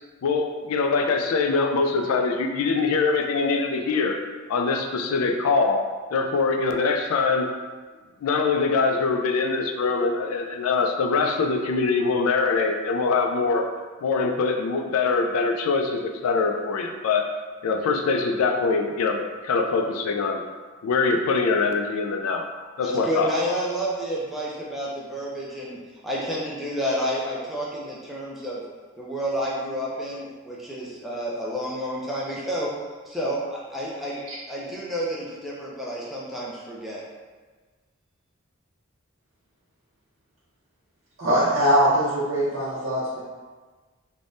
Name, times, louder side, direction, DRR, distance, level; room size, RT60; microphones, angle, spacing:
voice 1, 0.2-4.2 4.5-7.5 8.2-13.7 14.0-17.3 17.6-20.4 20.8-22.5 22.8-23.3, left 4 dB, 90° left, 4 dB, 0.3 m, -23 dB
voice 2, 22.8-28.6 29.0-32.7 33.1-34.2 34.5-37.0, equal, ahead, -6 dB, 0.4 m, -30 dB
voice 3, 41.2-43.2, equal, 65° right, -10 dB, 0.7 m, -22 dB
3.3 x 2.1 x 2.5 m, 1.4 s
head